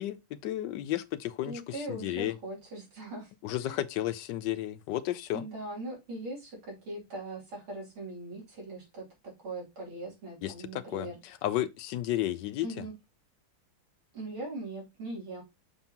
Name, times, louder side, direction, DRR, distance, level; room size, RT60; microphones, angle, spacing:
voice 1, 0.0-2.3 3.4-5.4 10.4-12.7, left 13 dB, 75° left, 1.0 m, -33 dB
voice 2, 1.5-3.3 3.6-3.8 5.3-9.0 9.4-11.2 12.6-12.9 14.1-15.4, right 2 dB, 75° right, 3.8 m, -40 dB
6.8 x 5.4 x 2.8 m
omnidirectional pair, 2.3 m